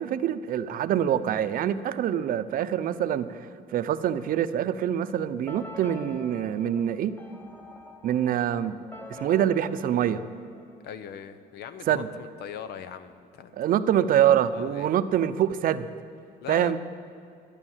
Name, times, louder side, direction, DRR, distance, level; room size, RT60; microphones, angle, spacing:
voice 1, 0.0-7.1 8.0-8.8 9.1-10.2 11.9-12.1 13.6-15.9 16.5-16.8, right 10 dB, 55° right, 12 dB, 0.6 m, -25 dB
sound 1, 5.5-11.2, left 1 dB, 10° left, 1.2 m, -46 dB
voice 2, 10.8-13.5 14.5-14.9 16.4-16.7, left 8 dB, 75° left, 12 dB, 0.9 m, -40 dB
12.5 x 9.9 x 7.3 m, 2.5 s
cardioid pair, 110°, 17 cm